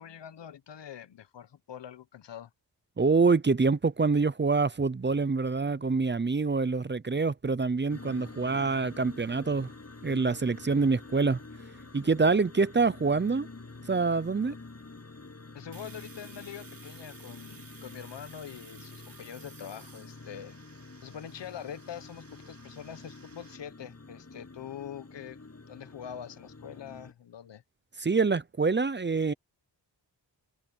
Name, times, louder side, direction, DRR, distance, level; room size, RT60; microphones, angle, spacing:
voice 1, 0.0-2.5 15.5-20.5 21.0-25.4 25.7-27.6, left 9 dB, 80° left, 1.1 m, -44 dB
voice 2, 3.0-9.7 10.0-11.4 11.9-13.5 13.9-14.5 28.0-29.3, right 4 dB, 25° right, 0.7 m, -26 dB
sound 1, 7.9-27.1, left 3 dB, 35° left, 7.1 m, -48 dB
Domestic sounds home sounds, 15.7-23.6, right 5 dB, 55° right, 3.0 m, -54 dB
wide cardioid pair, 90°, 42 cm